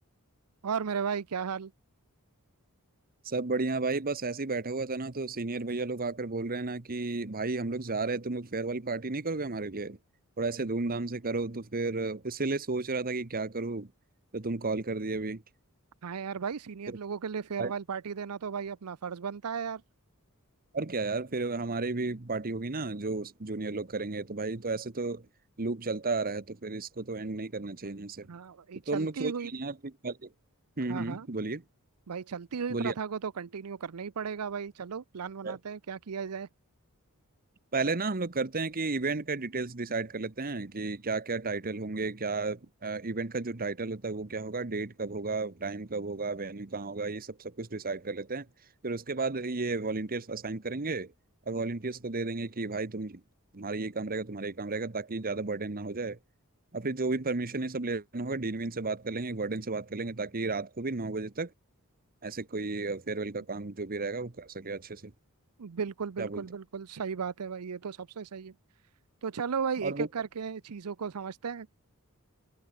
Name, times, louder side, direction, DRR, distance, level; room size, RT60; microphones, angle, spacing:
voice 1, 0.6-1.7 16.0-19.8 28.3-29.5 30.9-31.3 32.1-36.5 65.6-68.5 69.2-71.7, right 6 dB, 85° right, 0.6 m, -35 dB
voice 2, 3.2-10.0 10.4-13.9 14.3-15.4 17.6-17.7 20.7-25.3 25.6-28.3 28.9-30.3 30.8-31.6 32.7-32.9 35.4-35.6 37.7-48.5 48.8-51.1 51.5-53.2 53.5-56.2 56.7-61.5 62.2-65.1 66.2-66.4 69.8-70.1, right 3 dB, 40° right, 1.2 m, -33 dB
head